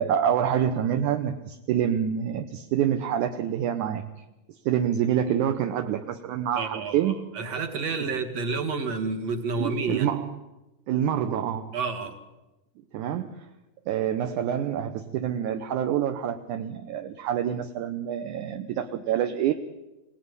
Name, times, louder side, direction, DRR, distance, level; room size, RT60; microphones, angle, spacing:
voice 1, 0.0-4.1 4.5-7.2 9.6-10.4 10.9-11.7 12.9-13.5 13.9-19.5, right 9 dB, 70° right, 6 dB, 2.4 m, -27 dB
voice 2, 6.6-10.1 11.7-12.2, right 4 dB, 50° right, 5 dB, 3.1 m, -30 dB
26.5 x 18.5 x 9.7 m, 1.0 s
omnidirectional pair, 3.8 m